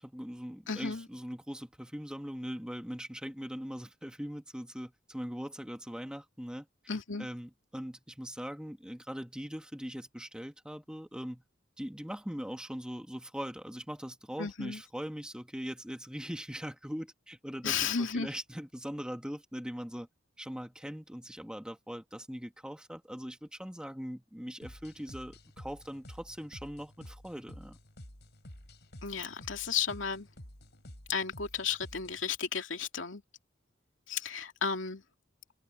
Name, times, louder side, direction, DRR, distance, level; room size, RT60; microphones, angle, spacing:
voice 1, 0.0-6.7 7.2-11.4 11.8-20.1 20.4-27.8, equal, 5° right, 1.6 m, -41 dB
voice 2, 0.7-1.1 6.9-7.3 14.4-14.8 17.6-18.3 29.0-30.3 31.1-33.2 34.1-35.0, left 6 dB, 85° left, 2.6 m, -33 dB
sound 1, 24.6-32.3, equal, 60° left, 5.6 m, -51 dB
head